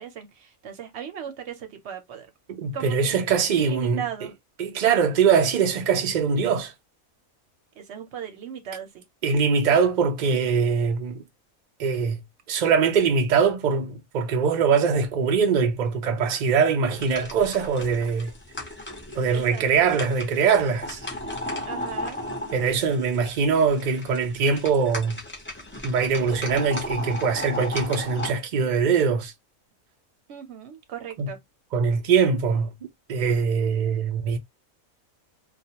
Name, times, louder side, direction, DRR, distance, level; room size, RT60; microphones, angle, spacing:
voice 1, 0.0-2.3 2.7-3.2 3.6-4.3 7.8-9.0 19.3-20.0 21.6-22.2 30.3-31.4, right 8 dB, 60° right, 0.8 m, -37 dB
voice 2, 2.5-4.0 4.6-6.7 9.2-11.2 11.8-12.2 12.5-18.3 19.2-21.0 22.5-25.2 25.8-29.3 31.2-31.3 31.7-32.7 33.1-34.4, right 5 dB, 80° right, 0.4 m, -22 dB
sound 1, 17.0-28.3, left 1 dB, 20° left, 0.3 m, -36 dB
2.4 x 2.1 x 2.8 m
omnidirectional pair, 1.5 m